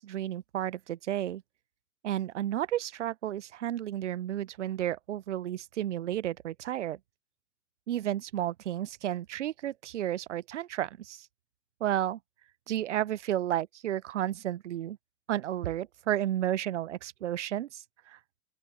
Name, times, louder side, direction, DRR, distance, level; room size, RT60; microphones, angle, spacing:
voice 1, 0.0-1.4 2.0-7.0 7.9-11.3 11.8-12.2 12.7-15.0 15.3-18.2, right 12 dB, 65° right, 0.8 m, -32 dB
open air
figure-of-eight pair, 90°, 38 cm